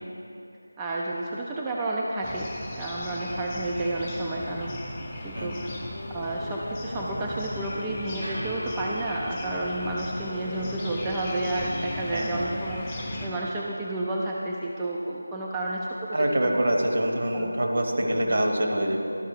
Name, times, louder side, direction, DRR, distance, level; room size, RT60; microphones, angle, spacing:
voice 1, 0.8-2.5 2.7-4.8 5.2-5.6 6.1-12.8 13.2-15.9 16.2-16.6 17.3-17.5 18.1-18.3, right 2 dB, 10° right, -4 dB, 0.4 m, -31 dB
sound 1, 2.2-13.3, left 1 dB, 15° left, 0.7 m, -37 dB
voice 2, 5.3-5.7 12.1-12.6 16.1-19.0, right 1 dB, 55° right, 2 dB, 1.1 m, -25 dB
sound 2, 5.4-13.1, left 1 dB, 85° left, 0.5 m, -41 dB
sound 3, 8.2-16.4, equal, 75° right, 1.7 m, -49 dB
12.5 x 4.3 x 4.8 m, 2.8 s
figure-of-eight pair, 170°, 0 cm